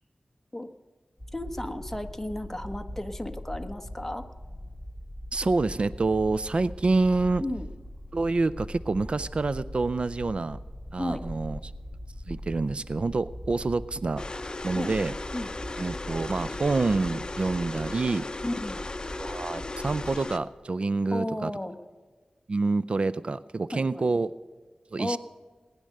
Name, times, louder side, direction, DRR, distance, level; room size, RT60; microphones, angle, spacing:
sound 1, 1.2-20.2, left 1 dB, 5° right, 4.4 m, -41 dB
voice 1, 1.3-4.2 7.4-7.7 11.0-11.2 14.7-14.9 15.3-15.5 18.4-18.8 21.1-21.8 23.7-24.1 25.0-25.2, left 1 dB, 15° left, 7 dB, 1.2 m, -33 dB
voice 2, 5.3-7.4 8.1-10.6 10.9-11.7 12.3-14.2 14.6-15.1 15.8-18.2 19.2-21.5 22.5-24.3 24.9-25.2, right 3 dB, 55° right, 17 dB, 0.4 m, -27 dB
sound 2, 14.2-20.4, left 2 dB, 35° left, 0.8 m, -36 dB
19.5 x 10.0 x 6.5 m, 1.4 s
wide cardioid pair, 85°, 2 cm